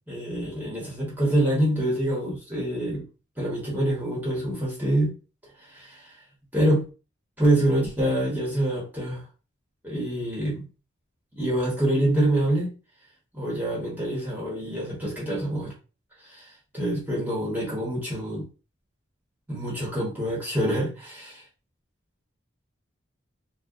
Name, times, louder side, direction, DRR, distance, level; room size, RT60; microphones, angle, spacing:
voice 1, 0.1-3.1 3.4-5.1 5.7-6.1 6.5-6.8 7.4-9.2 9.8-10.6 11.4-12.7 13.3-15.7 16.2-18.5 19.5-21.4, right 1 dB, 10° right, -5 dB, 0.8 m, -26 dB
2.7 x 2.0 x 2.3 m, 0.33 s
head